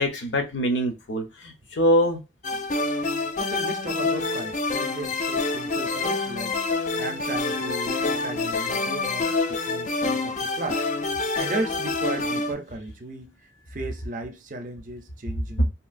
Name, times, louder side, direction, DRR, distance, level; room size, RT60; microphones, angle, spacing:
voice 1, 0.0-2.2, equal, 80° left, 0.7 m, -24 dB
sound 1, 2.4-12.5, left 3 dB, 40° left, 0.3 m, -27 dB
voice 2, 3.4-6.6 7.0-10.9 11.3-13.3 13.7-15.7, right 2 dB, 40° right, 0.5 m, -35 dB
2.8 x 2.6 x 2.5 m
head